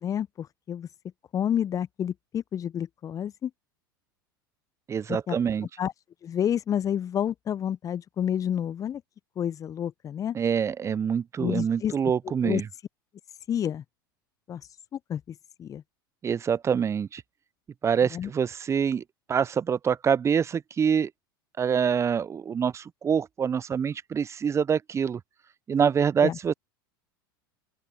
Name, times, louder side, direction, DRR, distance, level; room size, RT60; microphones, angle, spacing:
voice 1, 0.0-0.9 1.3-3.5 5.1-5.4 5.8-5.9 6.2-9.0 9.4-10.4 11.4-11.9 12.4-12.6 13.5-13.8 14.5-14.6 14.9-15.2 15.6-15.8 18.1-18.3 26.2-26.4, left 9 dB, 30° left, 0.6 m, -29 dB
voice 2, 4.9-5.7 10.3-12.7 16.2-17.2 17.8-19.0 19.3-21.1 21.6-25.2 25.7-26.5, right 7 dB, 25° right, 0.7 m, -25 dB
open air
hypercardioid pair, 85°, 12 cm